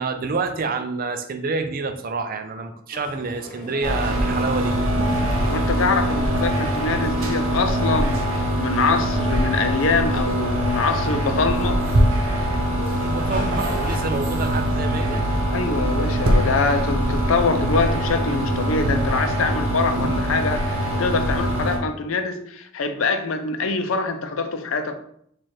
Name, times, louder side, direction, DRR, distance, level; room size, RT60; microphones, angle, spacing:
voice 1, 0.0-5.4 13.0-15.2 20.0-20.1, right 4 dB, 45° right, 8 dB, 0.4 m, -28 dB
sound 1, 2.9-14.0, left 1 dB, 40° left, 1.1 m, -39 dB
sound 2, 3.8-21.8, right 1 dB, 85° right, 0.8 m, -23 dB
voice 2, 5.5-8.2 8.6-11.8 15.5-25.0, left 4 dB, 70° left, 7 dB, 0.5 m, -24 dB
4.6 x 2.4 x 4.3 m, 0.69 s
head